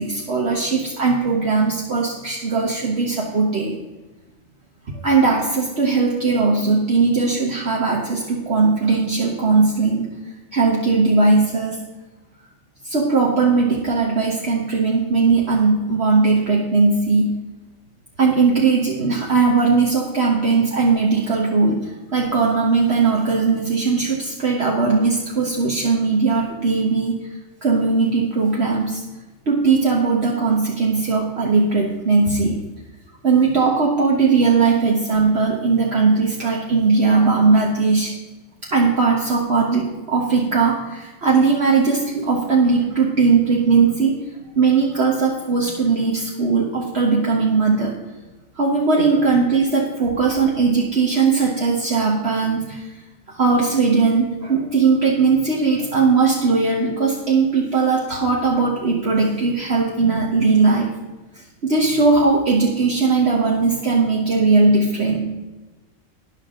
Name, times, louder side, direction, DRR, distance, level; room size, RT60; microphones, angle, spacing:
voice 1, 0.0-3.7 4.9-10.1 10.5-11.8 12.8-17.4 18.2-27.1 27.6-29.0 29.5-32.6 33.2-38.1 38.7-44.2 44.5-47.9 48.5-52.9 53.3-60.9 61.6-65.2, right 4 dB, 55° right, -2 dB, 1.6 m, -18 dB
13.0 x 10.5 x 3.8 m, 1.1 s
omnidirectional pair, 1.4 m